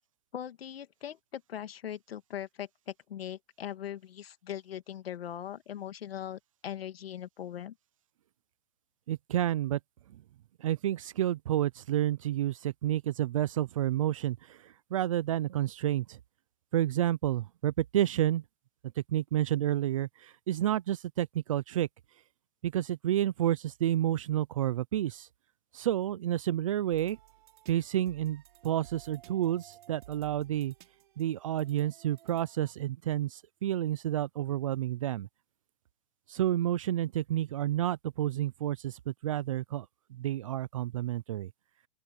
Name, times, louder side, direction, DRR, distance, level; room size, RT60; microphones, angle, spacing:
voice 1, 0.3-7.7, left 10 dB, 80° left, 2.2 m, -40 dB
voice 2, 9.1-9.8 10.6-14.6 14.9-16.2 16.7-18.4 19.1-21.9 22.6-25.3 25.7-27.2 27.7-30.7 31.2-35.3 36.3-39.9 40.1-41.5, right 12 dB, 35° right, 0.4 m, -30 dB
sound 1, 26.9-32.7, right 13 dB, 55° right, 4.2 m, -56 dB
open air
hypercardioid pair, 165°, 29 cm